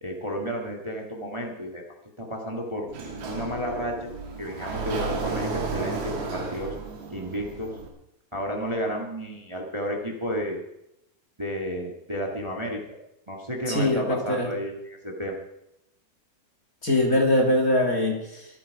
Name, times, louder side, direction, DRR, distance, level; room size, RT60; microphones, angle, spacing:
voice 1, 0.0-1.8 2.2-2.9 3.2-4.1 4.4-6.7 7.1-7.7 8.3-10.6 11.4-13.0 13.3-15.4, equal, 30° right, 0 dB, 0.5 m, -32 dB
Sliding door, 2.9-7.9, right 4 dB, 90° right, 4.1 m, -33 dB
voice 2, 13.7-14.5 16.8-18.5, left 1 dB, 30° left, 0 dB, 2.1 m, -22 dB
24.5 x 9.2 x 4.9 m, 0.85 s
omnidirectional pair, 4.3 m